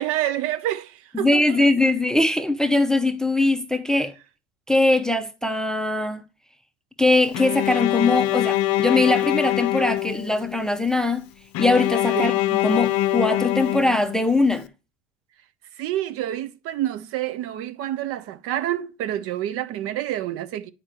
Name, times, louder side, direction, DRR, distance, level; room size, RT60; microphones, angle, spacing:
voice 1, 0.0-1.4 12.1-12.3 15.8-20.7, right 13 dB, 45° right, 0.7 m, -28 dB
voice 2, 1.1-4.1 4.7-6.2 7.0-11.2 11.6-14.7, left 2 dB, ahead, 0.7 m, -21 dB
Bowed string instrument, 7.3-10.6 11.5-14.5, left 15 dB, 50° left, 0.7 m, -24 dB
8.6 x 5.0 x 4.4 m
hypercardioid pair, 90°, 32 cm